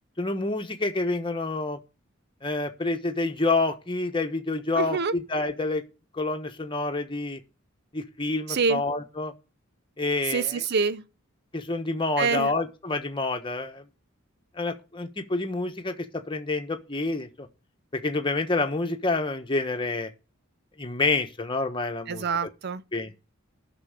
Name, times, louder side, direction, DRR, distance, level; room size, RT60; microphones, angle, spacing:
voice 1, 0.2-1.8 2.4-5.8 6.1-7.4 7.9-9.3 10.0-10.6 11.5-13.8 14.6-17.5 18.0-20.1 20.8-22.5 22.9-23.1, left 3 dB, 25° left, 1.2 m, -28 dB
voice 2, 4.8-5.1 8.5-8.8 10.3-11.0 12.2-12.5 22.1-22.8, right 5 dB, 50° right, 0.6 m, -26 dB
11.0 x 6.1 x 8.2 m
head